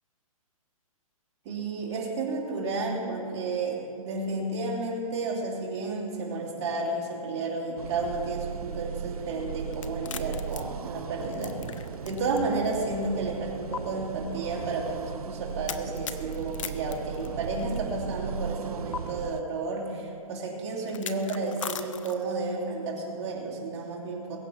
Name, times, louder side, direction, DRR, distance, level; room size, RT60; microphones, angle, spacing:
voice 1, 1.4-11.6 12.0-24.4, right 3 dB, 20° right, -5 dB, 2.8 m, -32 dB
sound 1, 7.8-19.4, right 7 dB, 85° right, 0.7 m, -37 dB
sound 2, 9.7-12.4 12.7-12.8 13.7-13.8 15.7-17.8 18.9-19.0 20.9-22.4, left 7 dB, 60° left, 0.9 m, -38 dB
22.0 x 8.2 x 5.9 m, 2.7 s
hypercardioid pair, 170°, 19 cm